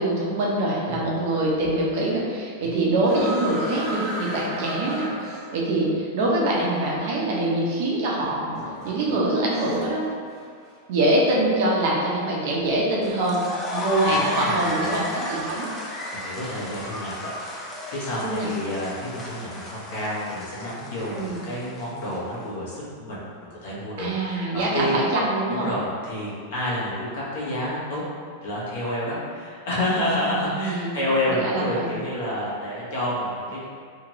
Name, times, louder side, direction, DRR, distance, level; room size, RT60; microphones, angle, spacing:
voice 1, 0.0-8.5 8.8-10.0 10.9-13.4 13.7-15.7 18.2-18.5 21.1-21.4 24.0-25.7 30.3-31.0 31.3-31.9, right 1 dB, 55° right, -4 dB, 0.7 m, -24 dB
sound 1, 3.0-5.9 7.0-7.1 8.2-10.0 10.3-10.7, right 1 dB, 10° right, 0.9 m, -34 dB
sound 2, 13.0-22.3, left 1 dB, 15° left, 0.4 m, -33 dB
voice 2, 14.0-15.1 16.1-17.3 17.9-24.9 25.5-28.0 28.4-33.7, left 1 dB, 65° left, -8 dB, 1.1 m, -29 dB
2.8 x 2.5 x 3.0 m, 2.2 s
supercardioid pair, 150°, 0 cm